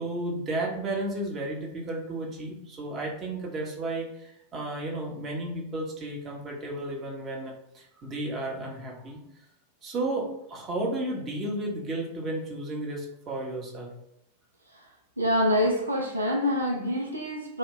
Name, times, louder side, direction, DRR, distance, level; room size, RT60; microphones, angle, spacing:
voice 1, 0.0-9.2 9.8-13.9, right 2 dB, 25° right, -1 dB, 0.8 m, -33 dB
voice 2, 15.2-17.6, left 1 dB, 80° right, 0 dB, 0.5 m, -26 dB
3.1 x 2.2 x 3.7 m, 0.80 s
figure-of-eight pair, 90°, 0 cm